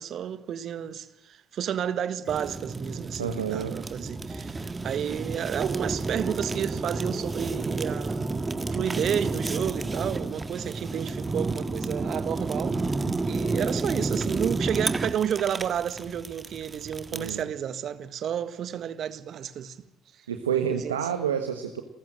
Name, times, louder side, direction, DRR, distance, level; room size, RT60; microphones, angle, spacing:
voice 1, 0.0-8.3 8.7-12.9 13.2-19.9 20.7-21.0, right 9 dB, 55° right, 1.6 m, -31 dB
Fire, 2.3-17.4, right 3 dB, 25° right, 1.8 m, -31 dB
voice 2, 3.2-3.8 17.1-17.5 20.3-21.8, right 8 dB, 85° right, 1.3 m, -29 dB
sound 1, 4.1-13.7, left 1 dB, 10° left, 3.0 m, -50 dB
29.5 x 14.5 x 7.7 m
hypercardioid pair, 55°, 0 cm